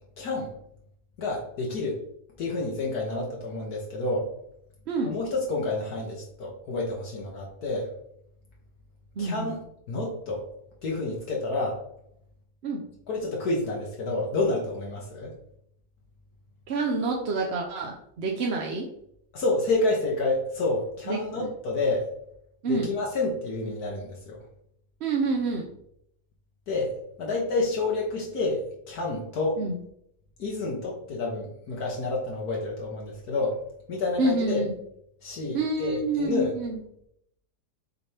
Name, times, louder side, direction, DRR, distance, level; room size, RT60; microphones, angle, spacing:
voice 1, 0.2-0.5 1.2-2.0 2.4-4.3 5.0-7.9 9.2-9.6 9.9-10.5 10.8-11.8 13.1-15.3 19.3-22.1 22.7-24.4 26.7-26.9 27.2-29.6 30.4-33.6 33.9-34.6 35.2-36.6, left 2 dB, 70° left, -2 dB, 1.6 m, -29 dB
voice 2, 9.2-9.5 12.6-12.8 16.7-18.9 21.1-21.5 22.6-22.9 25.0-25.7 29.6-29.8 34.2-34.8 35.5-36.8, right 3 dB, 50° right, 0 dB, 0.9 m, -28 dB
6.6 x 4.2 x 3.4 m, 0.72 s
omnidirectional pair, 1.7 m